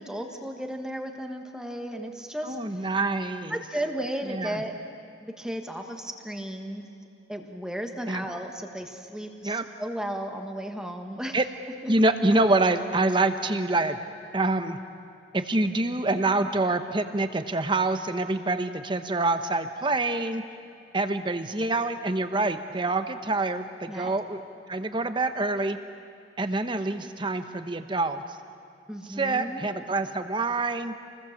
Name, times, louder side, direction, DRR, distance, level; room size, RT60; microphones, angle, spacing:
voice 1, 0.0-2.9 3.5-4.7 5.2-6.9 7.3-11.4 11.8-11.9 23.9-24.2 28.9-29.6, right 1 dB, 5° right, 3 dB, 1.4 m, -34 dB
voice 2, 2.4-3.6 4.3-4.6 8.1-8.2 9.4-9.6 11.3-11.4 11.8-14.0 14.3-14.8 15.3-20.4 20.9-24.4 24.7-25.8 26.4-28.4 29.2-30.9, right 2 dB, 25° right, 8 dB, 1.0 m, -26 dB
28.0 x 20.0 x 7.3 m, 2.4 s
head